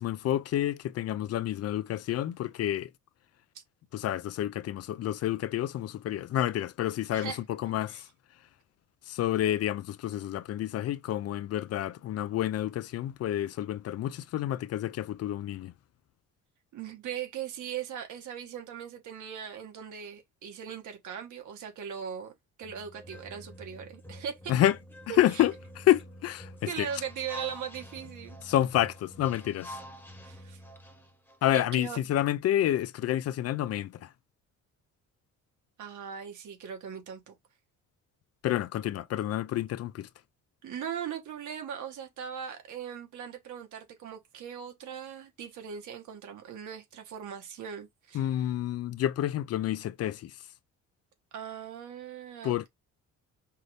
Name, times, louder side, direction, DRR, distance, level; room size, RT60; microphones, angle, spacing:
voice 1, 0.0-2.9 3.9-8.0 9.1-15.7 24.5-24.8 25.2-26.5 26.8-26.9 28.5-29.7 31.4-34.1 38.4-40.1 48.1-50.3 52.4-52.7, left 12 dB, 55° left, 0.4 m, -29 dB
voice 2, 16.7-22.3 22.6-24.5 25.1-25.5 26.7-28.4 30.2-30.6 31.5-32.1 35.8-37.3 40.6-48.3 51.3-52.7, right 8 dB, 75° right, 1.5 m, -39 dB
sound 1, 22.6-31.4, equal, 5° left, 1.0 m, -48 dB
5.5 x 2.6 x 3.2 m
cardioid pair, 160°, 30 cm